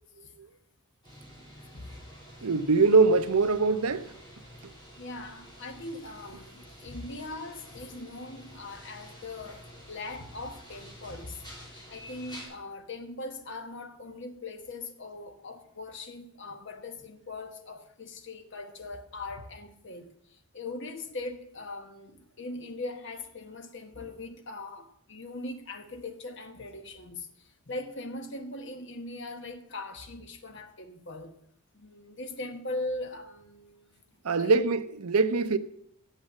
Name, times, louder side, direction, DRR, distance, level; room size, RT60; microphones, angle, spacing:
sound 1, 1.0-12.5, equal, 20° left, 3.3 m, -49 dB
voice 1, 2.4-4.1 34.2-35.6, right 4 dB, 85° right, 0.7 m, -23 dB
voice 2, 5.0-11.4 11.9-31.3 31.7-34.0 34.3-34.7, left 2 dB, 55° left, 1.1 m, -40 dB
8.4 x 7.2 x 7.3 m
head